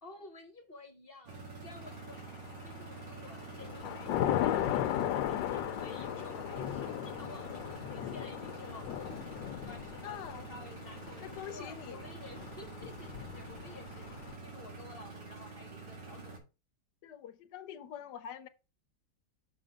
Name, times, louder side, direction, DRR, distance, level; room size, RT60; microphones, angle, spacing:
voice 1, 0.0-9.2 9.6-14.1 14.4-16.4, left 3 dB, 35° left, 1.3 m, -52 dB
sound 1, 1.3-16.4, right 4 dB, 75° right, 2.5 m, -47 dB
Thunder / Rain, 2.2-2.8 3.2-14.3, left 12 dB, 90° left, 1.3 m, -37 dB
voice 2, 10.0-10.4 11.2-12.1 17.0-18.5, left 9 dB, 70° left, 1.3 m, -45 dB
6.4 x 5.1 x 3.6 m
omnidirectional pair, 1.9 m